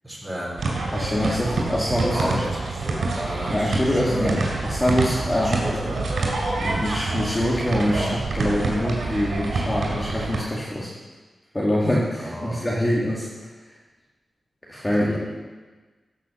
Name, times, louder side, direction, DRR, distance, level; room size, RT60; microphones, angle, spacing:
voice 1, 0.0-0.6 2.1-4.4 5.4-6.0 12.2-12.6 14.9-15.2, equal, 10° right, -3 dB, 4.1 m, -32 dB
sound 1, 0.6-10.4, right 3 dB, 90° right, 3.2 m, -27 dB
voice 2, 0.9-2.4 3.5-5.8 6.5-10.9 11.5-13.3 14.7-15.2, left 1 dB, 15° left, -6 dB, 2.2 m, -24 dB
15.5 x 6.1 x 7.2 m, 1.3 s
wide cardioid pair, 105°, 0 cm